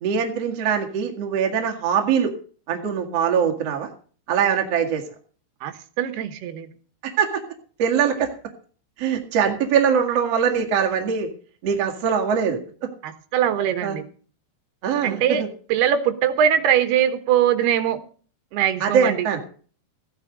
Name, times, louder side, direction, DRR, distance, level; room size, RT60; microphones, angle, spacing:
voice 1, 0.0-2.3 2.7-3.9 4.3-5.0 7.0-7.3 7.8-8.3 9.0-11.3 11.6-12.9 13.8-14.0 14.8-15.5 18.8-19.4, right 7 dB, 50° right, 2 dB, 2.0 m, -22 dB
voice 2, 5.6-6.7 13.0-14.1 15.0-15.4 15.7-18.0 18.5-19.3, right 9 dB, 70° right, 9 dB, 2.8 m, -21 dB
15.5 x 9.9 x 5.1 m, 0.42 s
omnidirectional pair, 5.5 m